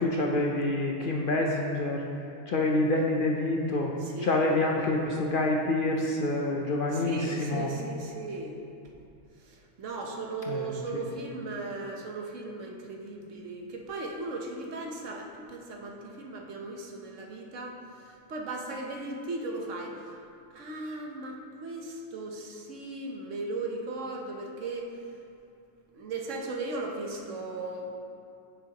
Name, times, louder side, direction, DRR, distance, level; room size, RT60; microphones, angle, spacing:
voice 1, 0.0-2.0 2.5-3.9 4.2-7.7 10.5-11.0, left 2 dB, 55° left, 0 dB, 0.6 m, -27 dB
voice 2, 4.0-4.4 4.9-5.2 6.9-8.6 9.4-20.2 20.5-24.9 25.9-28.0, right 2 dB, 70° right, 1 dB, 1.2 m, -37 dB
9.5 x 7.9 x 2.9 m, 2.5 s
omnidirectional pair, 1.4 m